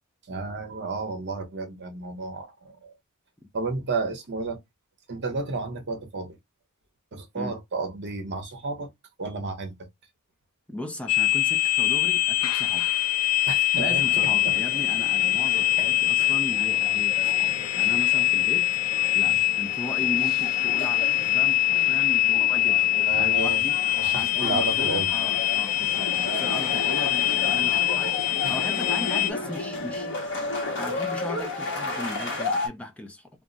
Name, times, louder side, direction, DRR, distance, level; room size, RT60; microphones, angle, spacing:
voice 1, 0.3-2.9 3.5-4.6 5.1-6.4 7.1-8.9 9.2-9.9 13.5-14.6 15.8-15.9 19.3-19.4 23.0-23.6 24.0-25.1 28.4-28.5, right 3 dB, 55° right, 0.7 m, -32 dB
voice 2, 10.7-12.9 13.7-18.8 19.1-22.9 23.2-23.8 24.1-30.1 30.8-33.3, left 1 dB, 5° left, 0.3 m, -37 dB
sound 1, 11.1-29.3, left 16 dB, 90° left, 0.4 m, -23 dB
sound 2, 13.9-32.7, left 2 dB, 60° left, 1.0 m, -34 dB
2.3 x 2.0 x 3.8 m
head